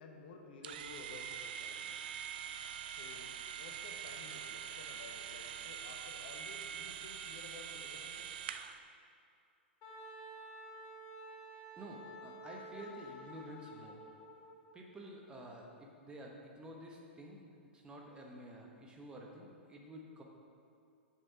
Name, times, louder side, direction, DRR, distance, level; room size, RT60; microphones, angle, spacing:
voice 1, 0.0-2.0 2.9-8.3, left 4 dB, 55° left, 2 dB, 0.9 m, -54 dB
sound 1, 0.6-8.8, right 8 dB, 50° right, 0.4 m, -44 dB
Wind instrument woodwind instrument, 9.8-14.4, right 1 dB, 35° left, 1.6 m, -51 dB
voice 2, 11.8-14.0 14.7-17.4 17.7-20.2, right 1 dB, 15° right, -1 dB, 1.0 m, -50 dB
7.1 x 6.2 x 5.0 m, 2.5 s
figure-of-eight pair, 100°, 6 cm